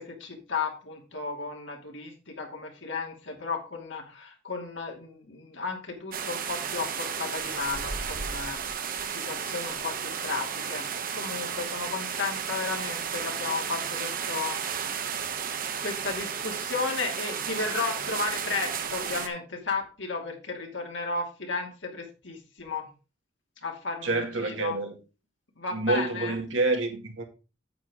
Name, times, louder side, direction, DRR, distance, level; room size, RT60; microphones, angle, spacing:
voice 1, 0.0-10.8 11.1-14.6 15.8-22.9 23.6-24.8 25.6-26.4, left 4 dB, 70° left, 2.5 m, -34 dB
sound 1, 6.1-19.3, right 7 dB, 50° right, 0.9 m, -33 dB
voice 2, 24.0-24.9 25.7-27.2, right 2 dB, 80° right, 2.3 m, -28 dB
8.7 x 8.1 x 3.7 m
head